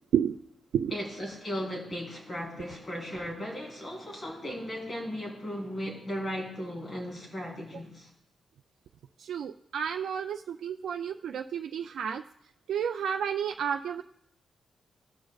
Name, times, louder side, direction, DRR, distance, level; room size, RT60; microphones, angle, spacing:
voice 1, 0.9-8.1, equal, 25° left, -2 dB, 3.4 m, -36 dB
voice 2, 9.2-12.2 12.7-14.0, right 8 dB, 90° right, 5 dB, 0.3 m, -31 dB
17.5 x 6.2 x 2.4 m, 0.74 s
wide cardioid pair, 130°, 0 cm